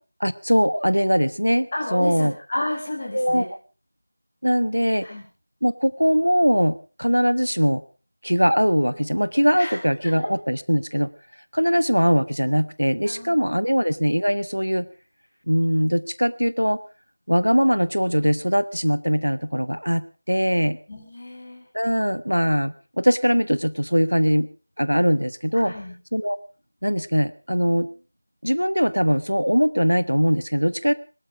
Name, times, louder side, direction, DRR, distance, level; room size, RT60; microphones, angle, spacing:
voice 1, 0.2-2.3 3.1-3.5 4.4-5.1 5.6-7.8 8.2-11.1 11.5-14.9 15.5-16.8 17.3-20.8 21.7-24.5 24.8-25.7 26.1-26.4 26.8-27.9 28.4-30.9, equal, 90° right, 16 dB, 1.1 m, -21 dB
voice 2, 1.7-3.5 5.0-5.2 9.5-10.1 13.0-13.7 20.9-21.6 25.5-25.9, left 1 dB, 25° left, -1 dB, 5.7 m, -32 dB
22.5 x 12.5 x 5.0 m, 0.36 s
figure-of-eight pair, 170°, 0 cm